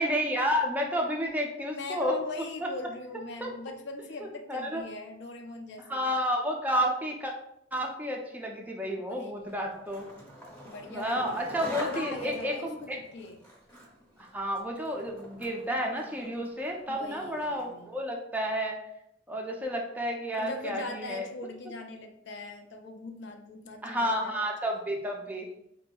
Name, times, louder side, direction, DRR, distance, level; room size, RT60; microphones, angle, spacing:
voice 1, 0.0-2.1 3.4-3.5 4.2-4.8 5.9-7.3 7.7-10.1 10.9-13.0 14.2-18.8 19.3-21.3 23.8-25.5, equal, 10° right, 0 dB, 0.4 m, -31 dB
voice 2, 1.7-6.1 9.1-9.6 10.6-13.4 16.9-18.0 20.4-24.3 24.6-24.8, left 2 dB, 65° left, 5 dB, 0.5 m, -40 dB
Skateboard, 9.5-17.8, equal, 5° left, 0.8 m, -46 dB
3.9 x 2.6 x 2.2 m, 0.77 s
head